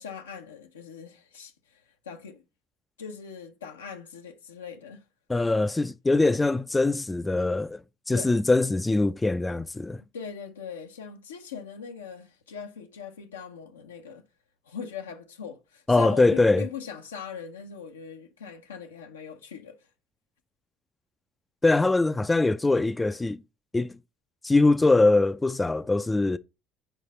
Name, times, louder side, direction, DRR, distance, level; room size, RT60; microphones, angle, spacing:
voice 1, 0.0-2.4 3.0-5.0 8.1-8.3 10.1-14.2 14.7-19.8, left 7 dB, 90° left, 1.0 m, -40 dB
voice 2, 5.3-10.0 15.9-16.7 21.6-23.4 23.7-24.0 24.4-26.4, left 2 dB, 15° left, 0.5 m, -22 dB
8.0 x 4.9 x 4.2 m
hypercardioid pair, 65°, 0 cm